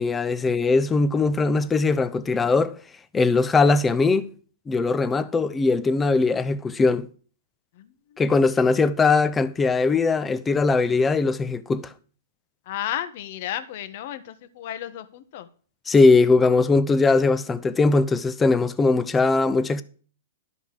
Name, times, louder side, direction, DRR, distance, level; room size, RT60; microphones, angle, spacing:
voice 1, 0.0-2.8 3.1-4.2 4.7-7.1 8.2-11.9 15.9-19.8, left 3 dB, 15° left, 0.7 m, -20 dB
voice 2, 12.7-15.5, left 11 dB, 55° left, 1.2 m, -32 dB
12.0 x 5.4 x 6.6 m
hypercardioid pair, 135°, 0 cm